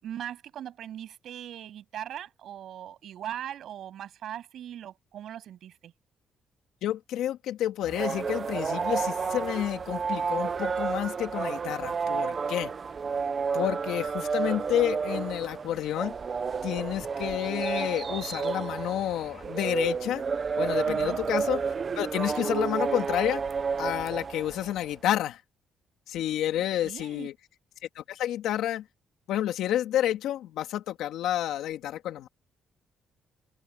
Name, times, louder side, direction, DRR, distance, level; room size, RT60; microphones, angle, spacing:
voice 1, 0.0-5.9 20.8-21.2 26.8-27.3, right 10 dB, 70° right, 7.5 m, -40 dB
voice 2, 6.8-12.7 13.5-16.1 16.6-20.2 20.6-21.6 21.9-23.4 23.8-25.4 26.1-27.3 27.9-28.8 29.3-32.3, left 12 dB, 85° left, 2.7 m, -30 dB
sound 1, 7.8-24.9, right 5 dB, 40° right, 0.4 m, -31 dB
cardioid pair, 90°, 0 cm